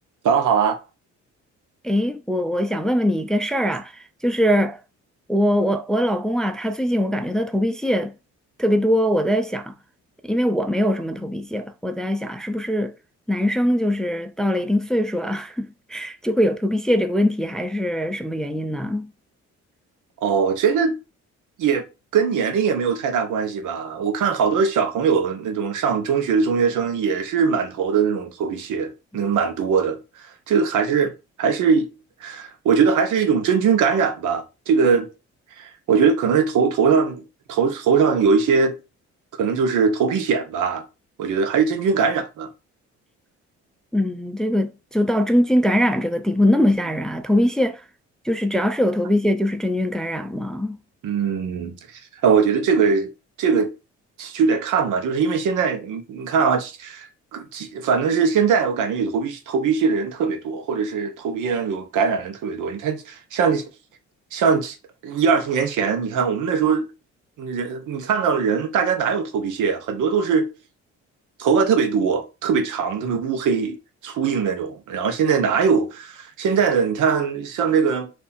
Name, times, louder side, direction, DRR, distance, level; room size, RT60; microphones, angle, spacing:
voice 1, 0.2-0.8 20.2-20.9 21.6-31.1 31.4-31.9 32.2-35.1 35.6-38.8 39.4-40.9 41.2-42.5 51.0-51.8 52.2-53.1 53.4-53.7 54.2-57.1 57.3-63.6 64.3-64.8 65.0-66.9 67.4-70.5 71.4-73.8 74.0-78.1, right 6 dB, 80° right, 1.0 m, -21 dB
voice 2, 1.8-4.8 5.3-8.2 8.6-9.8 10.2-13.0 13.3-19.1 43.9-47.8 48.2-50.8, equal, ahead, 0.4 m, -22 dB
3.3 x 2.6 x 4.2 m
cardioid pair, 90°, 30 cm